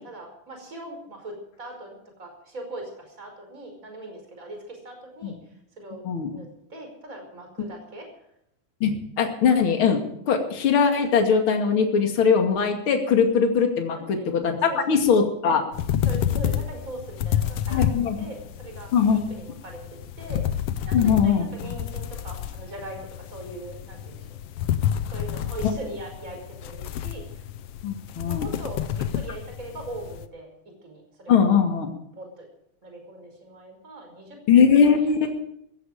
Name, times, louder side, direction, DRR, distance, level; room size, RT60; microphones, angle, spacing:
voice 1, 0.0-6.0 6.3-8.1 13.9-14.3 14.7-14.9 16.0-20.5 20.9-24.3 25.1-27.5 28.3-31.4 32.2-32.5 32.8-34.4 34.8-35.3, right 1 dB, 25° right, 3 dB, 5.5 m, -40 dB
voice 2, 8.8-10.0 10.3-15.6 17.7-18.2 18.9-19.2 20.9-21.8 25.6-25.7 27.8-28.5 31.3-31.9 34.5-35.3, left 6 dB, 45° left, 4 dB, 2.9 m, -21 dB
sound 1, 15.7-30.2, left 10 dB, 70° left, 1.5 m, -29 dB
16.5 x 15.0 x 5.0 m, 0.75 s
omnidirectional pair, 3.5 m